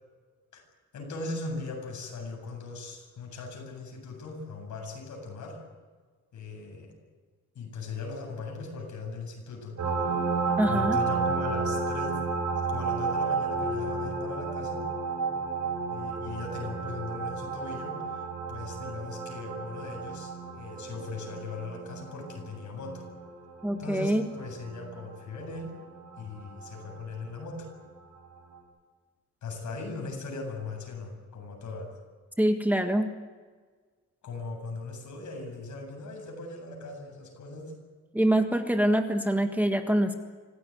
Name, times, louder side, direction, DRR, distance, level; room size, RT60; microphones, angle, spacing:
voice 1, 0.9-5.6 6.3-7.0 7.5-9.8 10.7-12.2 12.5-14.8 15.9-18.2 18.5-23.0 23.8-25.7 26.2-27.7 29.4-31.9 34.2-37.7, left 3 dB, 85° left, 2 dB, 7.9 m, -39 dB
sound 1, 9.8-27.0 28.5-28.6, right 4 dB, 90° right, 7.4 m, -32 dB
voice 2, 10.6-11.0 23.6-24.2 32.4-33.1 38.1-40.1, right 1 dB, 5° right, 5 dB, 1.6 m, -25 dB
25.5 x 17.0 x 9.8 m, 1.5 s
wide cardioid pair, 160°, 29 cm